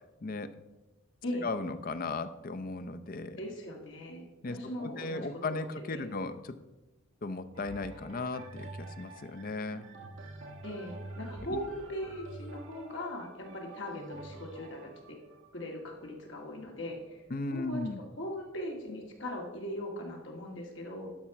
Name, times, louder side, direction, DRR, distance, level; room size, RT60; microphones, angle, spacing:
voice 1, 0.2-0.5 1.4-3.4 4.4-6.5 7.2-9.8 11.5-11.6 17.3-18.0, left 3 dB, 45° left, 11 dB, 0.5 m, -36 dB
voice 2, 3.4-6.1 10.6-15.2 15.5-17.2 17.5-17.8 18.2-21.1, left 1 dB, 60° left, 0 dB, 1.9 m, -40 dB
sound 1, 7.5-17.3 18.0-18.1, right 2 dB, 60° right, 1.4 m, -47 dB
12.0 x 4.3 x 5.9 m, 1.1 s
head